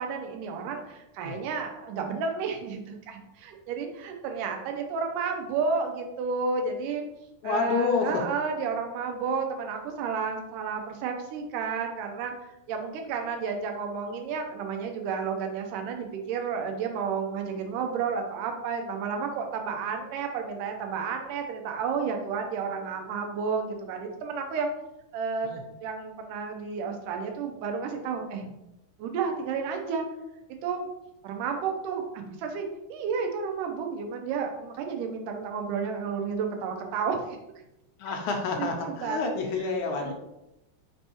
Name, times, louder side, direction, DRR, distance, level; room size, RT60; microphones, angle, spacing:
voice 1, 0.0-7.0 7.4-24.7 25.1-28.5 29.0-30.1 30.6-30.9 31.2-37.4 38.1-38.2 38.5-39.3 39.9-40.1, right 5 dB, 85° right, 4 dB, 2.2 m, -31 dB
voice 2, 7.4-8.2 25.4-25.6 38.0-40.1, left 4 dB, 80° left, 3 dB, 1.9 m, -28 dB
5.2 x 3.4 x 2.9 m, 0.88 s
omnidirectional pair, 3.7 m